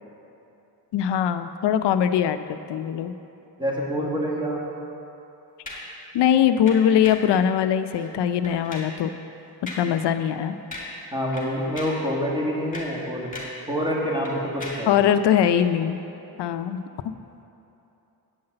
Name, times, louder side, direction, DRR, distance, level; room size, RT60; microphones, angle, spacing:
voice 1, 0.9-3.1 6.1-9.1 9.8-10.6 14.9-16.0 16.4-16.8, left 9 dB, 90° left, 10 dB, 0.5 m, -21 dB
voice 2, 3.6-4.6 11.1-13.3 13.7-15.1, equal, 10° right, -3 dB, 1.6 m, -27 dB
sound 1, 5.7-6.0 6.7-7.3 7.9-8.1 8.4-9.0 9.7-10.0 10.3-10.4 10.7-11.1 11.3-12.1 12.5-13.7 13.9-15.0 15.6-15.7, left 2 dB, 20° left, 2.1 m, -38 dB
8.7 x 5.6 x 7.7 m, 2.9 s
wide cardioid pair, 115°, 40 cm